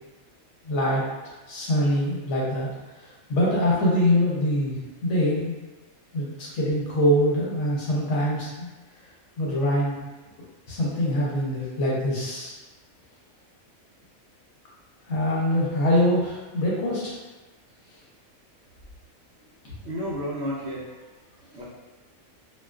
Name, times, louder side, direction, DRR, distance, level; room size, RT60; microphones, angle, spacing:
voice 1, 0.7-1.0 1.5-2.7 3.0-4.7 5.0-5.5 6.1-8.7 9.4-10.0 10.7-12.5 15.1-17.1, equal, 65° left, -6 dB, 0.9 m, -24 dB
voice 2, 19.8-20.8 21.5-21.6, equal, 65° right, -7 dB, 0.7 m, -31 dB
2.4 x 2.3 x 2.2 m, 1.2 s
omnidirectional pair, 1.4 m